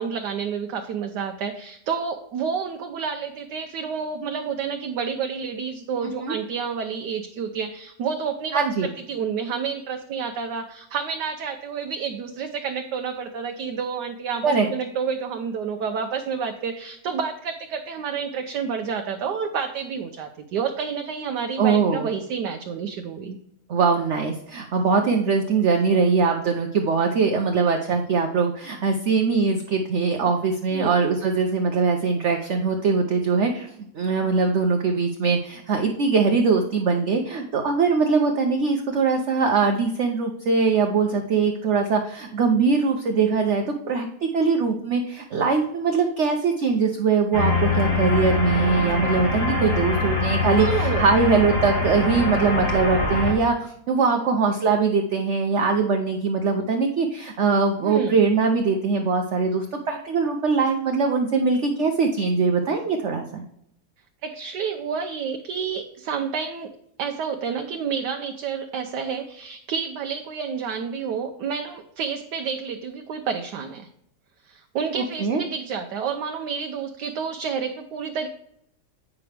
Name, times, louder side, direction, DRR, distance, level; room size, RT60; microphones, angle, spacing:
voice 1, 0.0-23.4 30.7-30.9 50.4-51.0 57.8-58.2 64.2-66.7 67.0-73.8 74.4-78.3, right 6 dB, 75° right, 4 dB, 1.2 m, -29 dB
voice 2, 6.0-6.3 8.5-8.9 14.4-14.7 21.6-22.1 23.7-33.7 33.9-63.4 74.9-75.4, right 4 dB, 55° right, 3 dB, 0.8 m, -22 dB
sound 1, 47.3-53.3, left 3 dB, 45° left, 2.1 m, -23 dB
8.5 x 6.0 x 3.3 m, 0.73 s
omnidirectional pair, 1.9 m